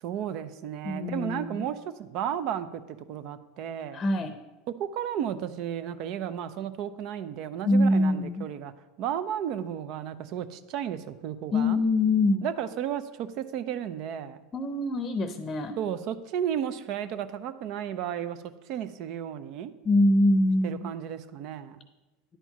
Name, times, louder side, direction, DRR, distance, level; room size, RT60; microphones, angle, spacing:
voice 1, 0.0-4.0 4.7-8.7 9.0-11.8 12.4-14.4 15.8-18.4 18.7-19.7 20.6-21.8, right 9 dB, 55° right, 13 dB, 0.6 m, -33 dB
voice 2, 0.8-1.7 3.9-4.3 7.6-8.4 11.5-12.5 14.5-15.7 19.8-20.9, left 2 dB, 30° left, 9 dB, 0.7 m, -24 dB
10.0 x 4.5 x 5.7 m, 1.1 s
hypercardioid pair, 95°, 0 cm